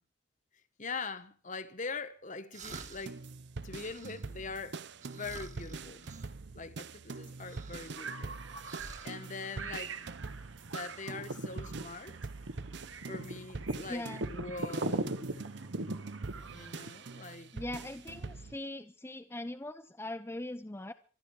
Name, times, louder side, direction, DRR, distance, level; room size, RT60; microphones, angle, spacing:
voice 1, 0.8-3.2 3.6-6.1 6.5-8.3 9.0-10.1 10.7-12.2 13.1-15.3 16.4-17.5, left 4 dB, 40° left, 1.4 m, -43 dB
sound 1, 2.5-3.3 3.7-4.4 5.0-6.3 7.4-8.3 8.6-9.2, right 4 dB, 40° right, 1.7 m, -50 dB
sound 2, 2.6-18.6, right 3 dB, 60° right, 0.7 m, -44 dB
sound 3, 8.0-17.3, right 2 dB, 85° right, 1.8 m, -40 dB
voice 2, 13.9-14.3 17.5-20.9, left 1 dB, 15° left, 0.7 m, -41 dB
26.0 x 10.5 x 4.8 m
head